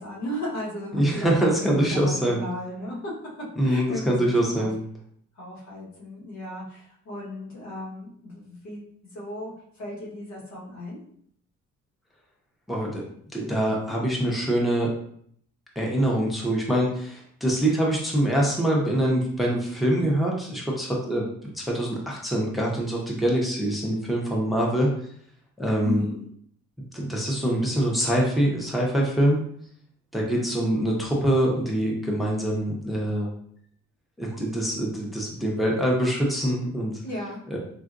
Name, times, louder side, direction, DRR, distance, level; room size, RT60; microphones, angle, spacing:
voice 1, 0.0-3.1 3.6-4.7 5.3-8.8 9.1-11.0 25.8-26.2 37.0-37.4, left 1 dB, 80° left, -5 dB, 1.4 m, -35 dB
voice 2, 0.9-2.4 3.6-4.8 12.7-13.0 13.3-14.9 15.8-21.3 21.5-24.9 25.6-26.0 26.9-29.4 30.1-33.3 34.2-37.0 37.5-37.6, right 1 dB, ahead, -2 dB, 0.7 m, -24 dB
3.7 x 2.3 x 2.5 m, 0.65 s
cardioid pair, 105°, 29 cm